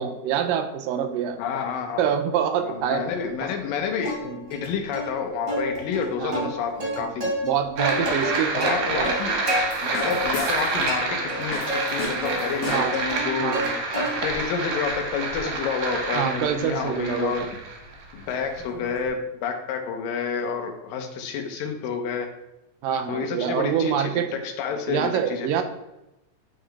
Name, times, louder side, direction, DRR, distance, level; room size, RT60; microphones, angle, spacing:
voice 1, 0.0-1.4 2.0-3.1 4.2-4.4 6.2-6.5 7.0-9.2 12.6-12.9 13.4-13.8 16.1-17.5 22.8-24.3 24.9-25.6, right 8 dB, 85° right, 7 dB, 2.3 m, -26 dB
voice 2, 1.4-2.0 2.6-4.1 4.5-7.3 8.5-9.3 9.8-13.5 13.9-17.6 18.1-22.3 23.1-25.5, left 6 dB, 85° left, 5 dB, 2.5 m, -29 dB
Plucked string instrument, 4.0-4.7 4.9-5.1 5.5-7.5 7.8-9.6 10.0-10.6 10.9-11.8 12.2-13.7 13.9-14.4 14.8-19.1, equal, 25° right, 1.4 m, -31 dB
sound 1, 7.8-18.7, right 3 dB, 70° right, 2.0 m, -28 dB
sound 2, 9.7-10.9 11.5-13.1, left 3 dB, 70° left, 2.6 m, -36 dB
9.1 x 3.8 x 3.4 m, 0.93 s
omnidirectional pair, 3.9 m